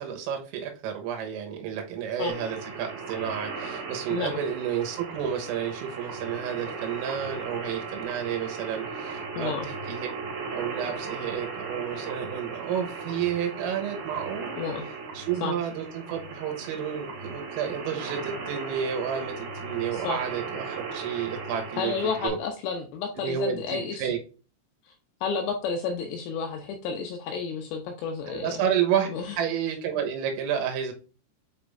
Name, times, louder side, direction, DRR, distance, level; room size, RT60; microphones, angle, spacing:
voice 1, 0.0-10.1 10.5-14.6 15.2-22.4 23.2-24.2 28.3-29.1 29.4-30.9, right 8 dB, 85° right, 3.9 m, -31 dB
sound 1, 2.3-22.3, right 4 dB, 55° right, 3.7 m, -37 dB
voice 2, 9.4-9.7 14.6-14.8 15.4-15.5 19.9-20.2 21.8-24.1 25.2-28.6 29.1-29.3, left 5 dB, 80° left, 2.6 m, -31 dB
9.2 x 4.9 x 2.6 m
omnidirectional pair, 5.8 m